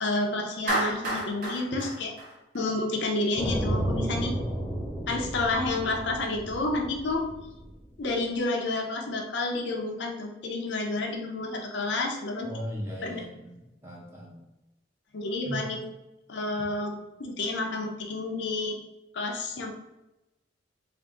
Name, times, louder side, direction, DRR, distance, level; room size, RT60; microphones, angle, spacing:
voice 1, 0.0-2.1 2.5-4.4 5.1-7.3 8.0-12.5 13.0-13.2 15.1-15.8 16.3-18.8 19.1-19.8, left 2 dB, 70° left, 2 dB, 0.6 m, -30 dB
Clapping, 0.7-3.0, right 1 dB, 50° right, 1.0 m, -30 dB
sound 1, 3.4-8.2, right 1 dB, 10° left, 0.5 m, -32 dB
voice 2, 12.4-14.4 15.5-15.6, equal, 15° right, -4 dB, 0.8 m, -38 dB
3.6 x 2.6 x 3.7 m, 0.99 s
head